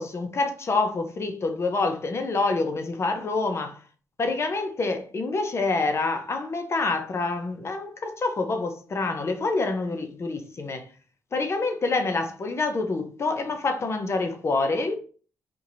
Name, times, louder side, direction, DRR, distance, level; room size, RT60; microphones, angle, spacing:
voice 1, 0.0-3.8 4.2-10.9 11.3-15.0, left 3 dB, 40° left, 0.7 m, -27 dB
4.5 x 2.7 x 2.6 m
supercardioid pair, 65°, 7 cm